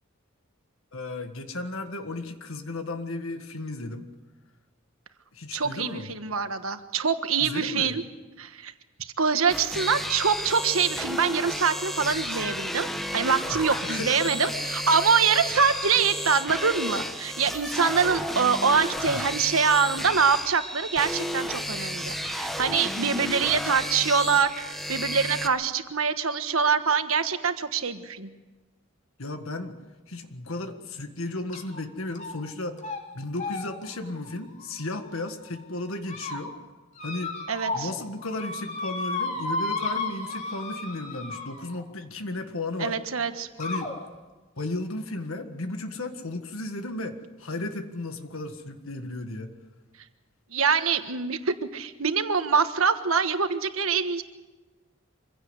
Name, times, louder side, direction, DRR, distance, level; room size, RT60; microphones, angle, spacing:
voice 1, 0.9-4.1 5.3-6.1 7.4-8.0 13.5-14.5 19.1-19.2 29.2-29.8 30.1-32.8 33.1-36.5 37.0-37.4 37.7-43.0 43.6-43.9 44.6-49.5, left 2 dB, 75° left, 7 dB, 1.7 m, -34 dB
voice 2, 5.5-8.0 8.4-8.7 9.0-28.3 37.5-37.9 42.8-43.5 50.5-54.2, right 5 dB, 80° right, 9 dB, 1.4 m, -25 dB
sound 1, 9.5-25.5, equal, ahead, 1.1 m, -32 dB
sound 2, 31.5-31.8 32.2-32.5 32.8-33.0 33.4-35.3 35.8-36.4 37.0-38.0 38.2-41.8 42.8-42.9 43.6-43.9, left 3 dB, 35° left, 3.1 m, -34 dB
25.0 x 16.5 x 8.0 m, 1.2 s
head